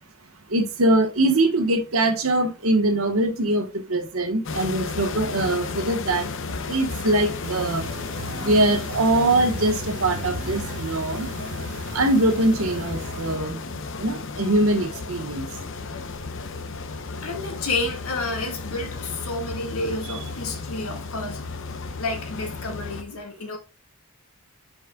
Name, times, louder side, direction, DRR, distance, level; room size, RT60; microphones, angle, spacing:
voice 1, 0.5-3.6 3.9-6.3 6.7-7.8 8.4-11.3 11.9-13.6 14.0-15.4 20.1-20.2, right 1 dB, 70° right, 1.4 m, -22 dB
sound 1, 4.4-23.0, left 4 dB, 60° left, 0.8 m, -33 dB
sound 2, 7.4-13.4, right 4 dB, 55° right, 0.8 m, -38 dB
voice 2, 17.2-21.4 22.0-23.6, left 2 dB, 80° left, 2.0 m, -30 dB
8.9 x 5.3 x 2.4 m
head